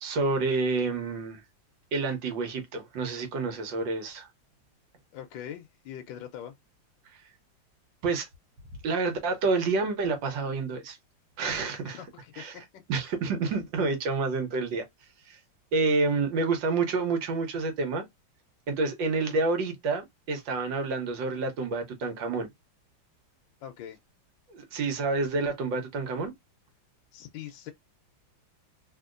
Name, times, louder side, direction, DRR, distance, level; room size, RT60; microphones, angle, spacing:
voice 1, 0.0-1.4 1.9-4.3 8.0-8.3 8.8-11.0 11.4-12.0 12.4-12.5 12.9-14.8 15.3-15.4 15.7-18.0 18.7-22.5 24.5-26.3, right 3 dB, 75° right, 1.7 m, -28 dB
voice 2, 5.1-6.5 11.8-12.8 23.6-24.0 27.1-27.7, left 10 dB, 80° left, 1.4 m, -42 dB
3.6 x 2.7 x 2.4 m
omnidirectional pair, 2.1 m